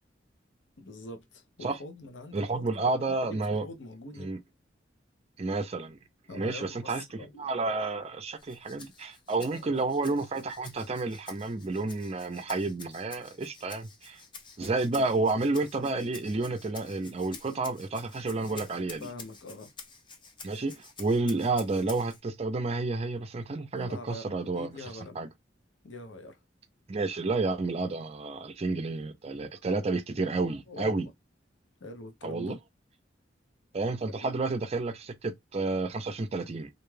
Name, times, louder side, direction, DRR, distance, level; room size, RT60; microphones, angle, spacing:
voice 1, 0.8-4.3 6.3-7.5 9.4-9.8 19.0-19.7 23.7-25.2 25.8-26.4 30.7-31.1 31.8-32.6 33.8-33.9, left 2 dB, 90° left, 0.7 m, -44 dB
voice 2, 2.3-3.7 4.2-4.4 5.4-6.0 6.3-14.2 14.6-19.1 20.4-24.8 25.2-25.3 26.9-31.1 32.2-32.6 33.7-36.7, right 3 dB, 35° right, 0.4 m, -30 dB
Rattle (instrument), 8.4-22.2, left 4 dB, 25° left, 0.5 m, -50 dB
2.5 x 2.3 x 3.1 m
head